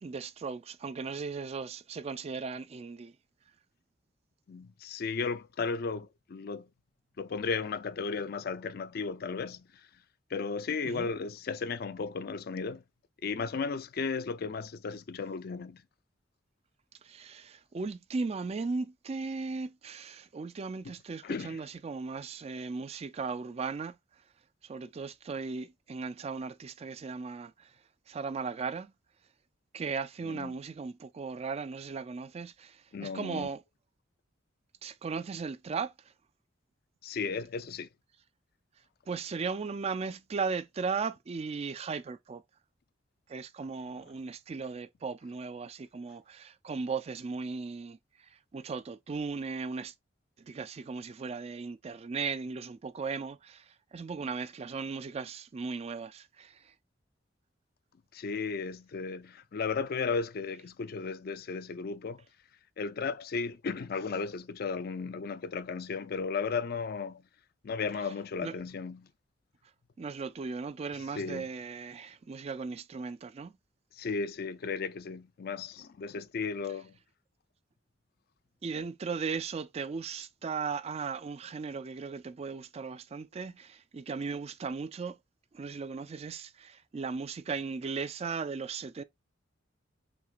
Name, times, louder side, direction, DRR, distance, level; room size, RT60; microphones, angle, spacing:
voice 1, 0.0-3.1 10.8-11.1 17.0-24.0 24.6-27.7 28.1-28.9 29.7-33.6 34.8-35.9 39.1-42.4 43.3-48.0 48.3-49.9 50.4-56.7 68.4-68.5 70.0-73.5 78.6-85.2 85.5-89.0, right 4 dB, 35° right, 0.3 m, -37 dB
voice 2, 4.5-6.7 7.2-9.9 10.3-12.8 13.2-15.8 21.2-21.6 30.2-30.6 32.9-33.5 37.0-37.9 58.1-62.3 62.8-67.2 67.6-69.1 71.1-71.5 73.9-77.0, left 5 dB, 50° left, 0.4 m, -35 dB
5.9 x 2.9 x 2.4 m
head